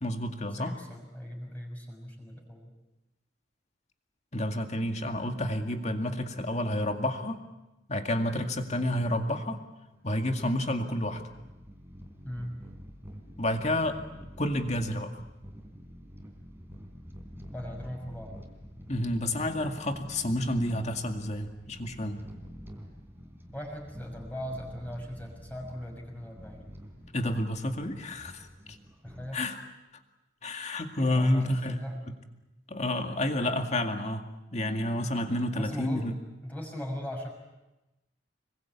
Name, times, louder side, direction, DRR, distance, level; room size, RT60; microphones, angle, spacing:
voice 1, 0.0-0.7 4.3-7.4 7.9-9.6 10.0-11.2 13.4-14.0 14.4-15.1 18.9-22.2 27.1-28.8 29.3-29.6 30.4-31.8 32.7-34.2 34.5-36.1, left 1 dB, 35° left, 5 dB, 2.2 m, -30 dB
voice 2, 0.6-2.7 12.2-12.6 17.5-18.3 23.5-26.6 29.0-29.4 31.0-32.0 35.5-36.1 36.4-37.3, equal, 10° left, 0 dB, 6.1 m, -39 dB
sound 1, 9.9-29.3, equal, 10° right, 3.7 m, -48 dB
26.0 x 22.5 x 8.5 m, 1.0 s
head